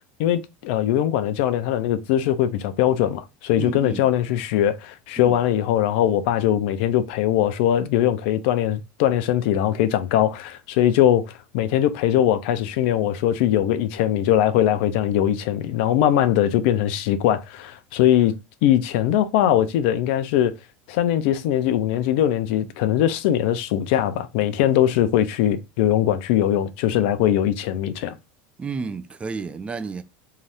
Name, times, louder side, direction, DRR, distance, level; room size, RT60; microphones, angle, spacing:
voice 1, 0.2-11.3 11.5-18.3 18.6-20.5 20.9-28.1, left 11 dB, 70° left, 0.5 m, -21 dB
voice 2, 3.6-4.0 5.2-5.4 28.6-30.0, right 5 dB, 20° right, 0.3 m, -31 dB
2.7 x 2.3 x 3.3 m
supercardioid pair, 110°, 6 cm